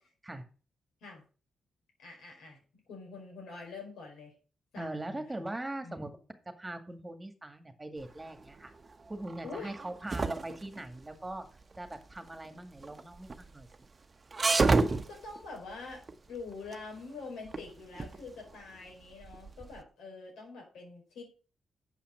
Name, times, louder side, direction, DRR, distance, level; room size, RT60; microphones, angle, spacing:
voice 1, 2.0-2.6 2.9-4.3 4.7-5.5 5.8-6.1 9.4-9.7 14.7-16.0 16.3-21.2, left 4 dB, 85° left, 0 dB, 4.9 m, -45 dB
voice 2, 4.8-6.2 6.6-8.7 9.1-11.5 11.8-13.7, right 1 dB, 20° right, 7 dB, 2.0 m, -41 dB
sound 1, 8.0-19.8, right 3 dB, 35° right, 0.9 m, -33 dB
8.1 x 5.8 x 6.4 m, 0.37 s
cardioid pair, 70°, 0 cm